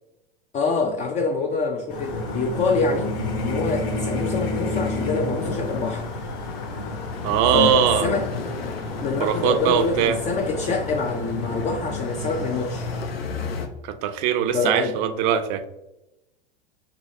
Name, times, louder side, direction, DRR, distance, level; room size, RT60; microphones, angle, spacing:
voice 1, 0.5-3.1 3.4-6.0 7.5-8.3 9.0-12.9 14.5-15.0, left 4 dB, 25° left, 3 dB, 0.4 m, -25 dB
sound 1, 1.9-13.0, left 2 dB, 65° left, 1.5 m, -31 dB
sound 2, 5.4-13.7, left 5 dB, 90° left, 0.6 m, -34 dB
voice 2, 7.2-8.1 9.2-10.2 13.8-15.6, right 9 dB, 50° right, 10 dB, 0.5 m, -21 dB
6.4 x 2.2 x 2.6 m, 0.92 s
hypercardioid pair, 95°, 29 cm